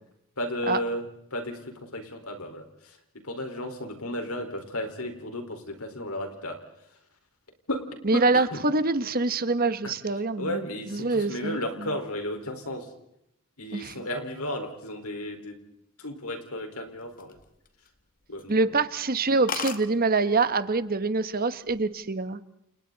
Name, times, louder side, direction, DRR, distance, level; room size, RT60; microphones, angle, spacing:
voice 1, 0.4-1.0 1.3-1.6 1.9-2.6 3.2-6.6 7.7-7.8 8.1-8.4 10.4-12.9 13.6-15.5 16.0-17.4 18.3-18.6, left 1 dB, 75° left, 5 dB, 4.7 m, -33 dB
voice 2, 8.0-10.6 10.9-11.9 13.7-14.1 18.5-22.4, right 3 dB, 40° right, 12 dB, 1.2 m, -25 dB
sound 1, 17.0-18.0 18.4-18.6 19.0-19.1 19.2-19.3 19.5-19.8 20.8-21.1 21.4-21.8, left 6 dB, 40° left, 2.0 m, -35 dB
29.5 x 29.5 x 4.1 m, 0.79 s
head